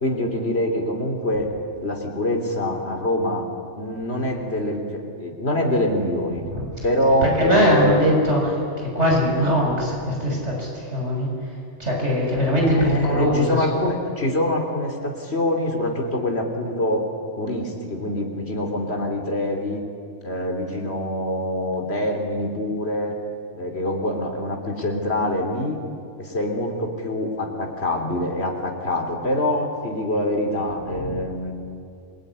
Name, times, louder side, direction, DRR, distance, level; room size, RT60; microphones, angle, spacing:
voice 1, 0.0-1.5 1.8-3.5 3.7-6.4 6.8-8.0 12.6-17.1 17.4-19.8 20.2-23.2 23.5-25.8 26.2-31.5, left 1 dB, 65° left, 2 dB, 3.8 m, -24 dB
voice 2, 6.4-6.9 7.2-13.7 31.0-31.2, equal, 75° right, -1 dB, 7.2 m, -22 dB
27.0 x 22.0 x 9.9 m, 2.4 s
omnidirectional pair, 1.2 m